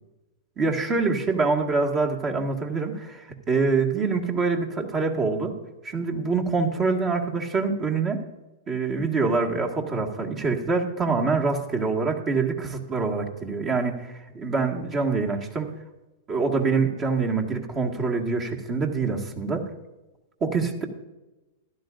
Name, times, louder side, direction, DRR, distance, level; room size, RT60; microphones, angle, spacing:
voice 1, 0.6-5.6 5.8-8.2 8.7-15.7 16.3-19.7 20.4-20.8, right 4 dB, 30° right, 1 dB, 1.8 m, -25 dB
14.5 x 11.5 x 2.6 m, 1.1 s
hypercardioid pair, 105°, 0 cm